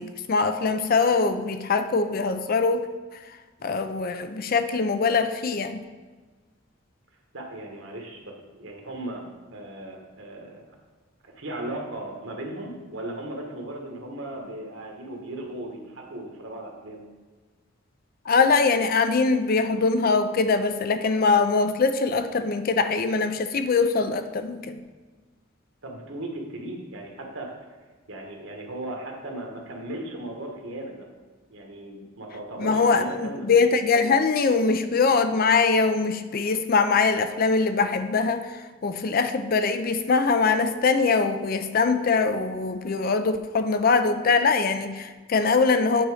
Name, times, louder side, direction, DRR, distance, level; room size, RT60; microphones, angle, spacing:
voice 1, 0.0-2.9 3.1-3.4 3.6-5.8 18.3-24.8 32.6-46.0, left 4 dB, 45° left, 9 dB, 0.4 m, -22 dB
voice 2, 7.3-9.2 9.5-10.6 11.4-17.0 25.8-27.5 28.1-31.1 31.5-33.5, right 1 dB, 70° right, 1 dB, 1.4 m, -37 dB
9.0 x 4.0 x 4.9 m, 1.4 s
head